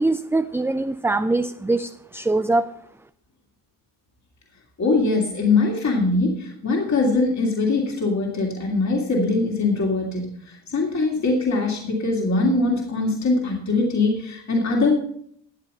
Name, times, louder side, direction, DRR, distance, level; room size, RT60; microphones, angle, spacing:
voice 1, 0.0-2.7, right 2 dB, 5° right, 9 dB, 0.5 m, -23 dB
voice 2, 4.8-14.9, left 3 dB, 40° left, -1 dB, 2.8 m, -22 dB
12.5 x 7.6 x 5.6 m, 0.67 s
supercardioid pair, 65°, 43 cm